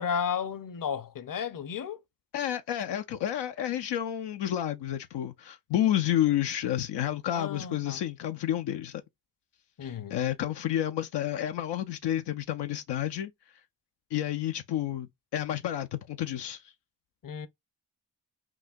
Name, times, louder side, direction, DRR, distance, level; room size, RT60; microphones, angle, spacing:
voice 1, 0.0-2.0 7.3-8.0 9.8-10.2 17.2-17.5, left 7 dB, 55° left, 0.8 m, -33 dB
voice 2, 2.3-9.0 9.8-13.3 14.1-16.7, left 11 dB, 85° left, 0.5 m, -30 dB
6.0 x 2.2 x 2.5 m
cardioid pair, 45°, 40 cm